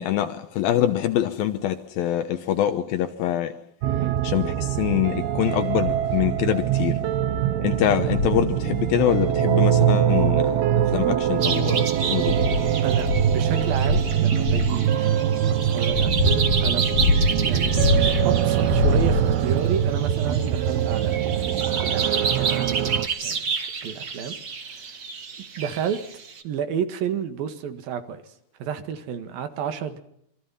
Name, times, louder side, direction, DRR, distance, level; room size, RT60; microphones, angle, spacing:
voice 1, 0.0-3.5 4.2-7.0 7.6-12.4, left 11 dB, 75° left, 2.7 m, -24 dB
sound 1, 3.8-23.1, right 10 dB, 90° right, 3.2 m, -23 dB
sound 2, 5.9-6.2 6.8-6.9 7.3-7.5 8.0-8.5 9.9-10.0 10.8-11.5 12.0-14.8 15.5-18.3 18.6-19.6 20.4-20.5, left 3 dB, 55° left, 3.3 m, -25 dB
sound 3, 11.4-26.4, right 5 dB, 45° right, 1.1 m, -31 dB
voice 2, 12.8-16.9 17.4-17.8 18.3-22.9 23.2-24.4 24.7-24.8 25.6-26.0 26.4-28.2 28.6-30.0, right 8 dB, 70° right, 3.5 m, -31 dB
26.5 x 22.5 x 5.7 m
omnidirectional pair, 4.3 m